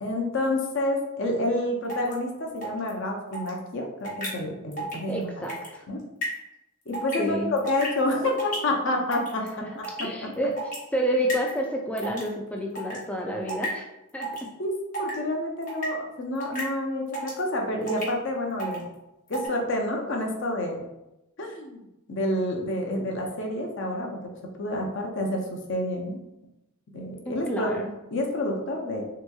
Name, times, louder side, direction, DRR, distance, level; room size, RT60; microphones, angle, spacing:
voice 1, 0.0-5.3 5.9-6.0 6.9-10.3 14.6-18.9 19.3-20.8 21.4-26.2 26.9-27.8 28.1-29.0, left 1 dB, 55° left, 1 dB, 0.5 m, -29 dB
sound 1, 1.9-2.1 2.6-2.9 3.3-3.5 4.0-4.3 4.7-4.9 5.2-5.7 6.2-6.3 6.9-7.2 7.6-8.0 8.4-8.6 9.1-9.5 9.8-10.0 10.6-10.7 11.3-11.6 12.0-12.3 12.7-13.0 13.5-13.7 14.2-14.5 14.9-15.1 15.6-15.9 16.4-16.6 17.1-17.4 17.9-18.1 18.6-18.8 19.3-19.5, right 1 dB, 35° left, 1.0 m, -32 dB
voice 2, 5.0-5.9 7.2-7.5 9.6-9.7 10.0-10.6 10.9-13.9 14.1-14.5 27.3-27.9, equal, 5° left, 1 dB, 0.3 m, -29 dB
3.4 x 2.9 x 2.3 m, 0.93 s
head